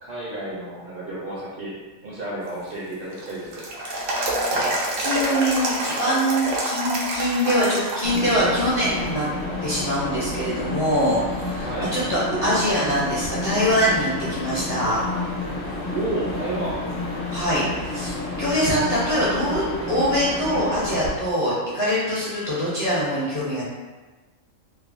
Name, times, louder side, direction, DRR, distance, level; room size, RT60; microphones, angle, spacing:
voice 1, 0.0-1.7 2.0-3.6 11.6-11.9 15.9-16.8, right 2 dB, 55° right, -7 dB, 0.7 m, -31 dB
sound 1, 2.5-8.6 9.0-9.1 9.8-10.3 10.8-10.9 11.4-12.6 12.9-13.0 16.4-16.5 19.5-19.6, right 1 dB, 80° right, 1.0 m, -28 dB
voice 2, 5.0-9.3 9.6-15.0 17.3-23.6, equal, 35° left, -10 dB, 0.6 m, -23 dB
sound 2, 8.0-21.1, left 2 dB, 80° left, 1.1 m, -30 dB
3.1 x 2.1 x 2.4 m, 1.2 s
omnidirectional pair, 1.3 m